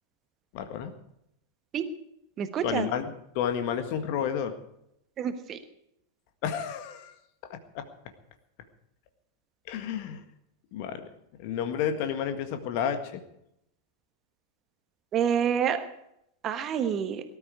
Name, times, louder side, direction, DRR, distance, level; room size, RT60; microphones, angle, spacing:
voice 1, 0.5-0.9 2.6-4.5 6.4-7.1 7.5-7.8 9.7-10.2 10.7-11.0 11.4-13.2, left 8 dB, 45° left, 8 dB, 1.8 m, -31 dB
voice 2, 2.4-2.9 5.2-5.6 15.1-15.8 16.4-17.2, right 8 dB, 30° right, 9 dB, 1.3 m, -27 dB
18.5 x 12.5 x 4.8 m, 0.78 s
figure-of-eight pair, 90°, 0 cm